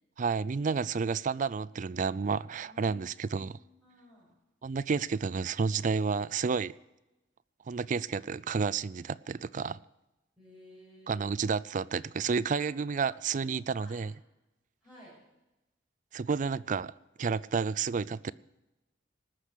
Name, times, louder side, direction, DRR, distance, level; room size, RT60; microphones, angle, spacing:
voice 1, 0.2-3.6 4.6-6.7 7.7-9.8 11.1-14.1 16.1-16.9 17.2-18.3, right 5 dB, 40° right, 18 dB, 0.4 m, -31 dB
voice 2, 2.6-4.3 10.4-11.3 12.6-12.7 13.1-14.0 14.8-15.2, left 1 dB, ahead, -9 dB, 6.0 m, -55 dB
19.5 x 6.6 x 8.1 m, 0.98 s
head